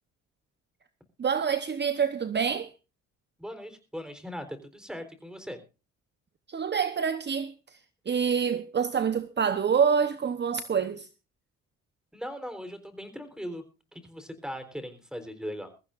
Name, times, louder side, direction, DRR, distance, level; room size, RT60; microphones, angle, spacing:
voice 1, 1.2-2.7 6.5-7.8 8.1-11.1, right 7 dB, 35° right, 1.0 m, -27 dB
voice 2, 3.4-5.6 12.1-13.6 13.9-15.7, equal, ahead, 3.9 m, -39 dB
22.0 x 14.5 x 2.5 m
cardioid pair, 90°, 30 cm